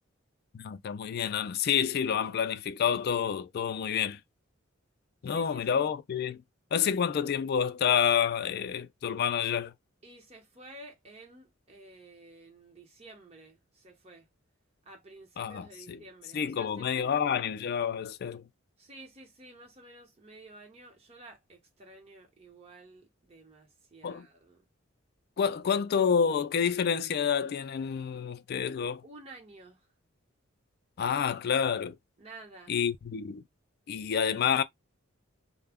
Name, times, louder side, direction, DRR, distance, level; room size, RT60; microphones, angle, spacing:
voice 1, 0.5-4.2 5.2-6.4 6.7-9.7 15.4-16.0 16.3-18.4 24.0-24.3 25.4-29.0 31.0-32.0 32.7-33.4 33.9-34.6, left 7 dB, 50° left, 0.3 m, -28 dB
voice 2, 5.3-5.9 10.0-14.3 14.8-17.5 18.8-24.6 29.0-29.9 32.2-32.8, right 2 dB, 30° right, 0.9 m, -52 dB
2.1 x 2.1 x 3.4 m
head